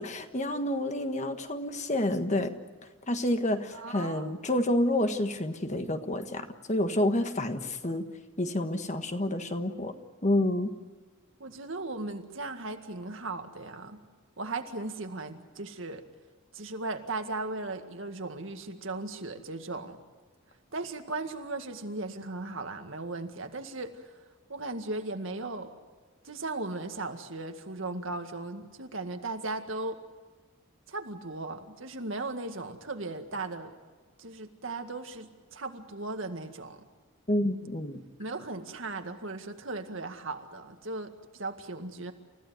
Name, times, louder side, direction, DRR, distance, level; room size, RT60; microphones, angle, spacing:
voice 1, 0.0-2.5 3.1-8.0 8.4-9.9 10.2-10.7 37.3-38.0, left 1 dB, 35° left, 7 dB, 1.5 m, -29 dB
voice 2, 3.7-4.3 11.4-14.0 14.4-16.0 16.5-20.0 20.7-24.1 24.5-25.8 26.2-30.0 30.9-33.7 34.2-36.8 38.2-42.1, right 2 dB, 65° right, 6 dB, 2.0 m, -37 dB
29.5 x 15.5 x 9.4 m, 1.4 s
head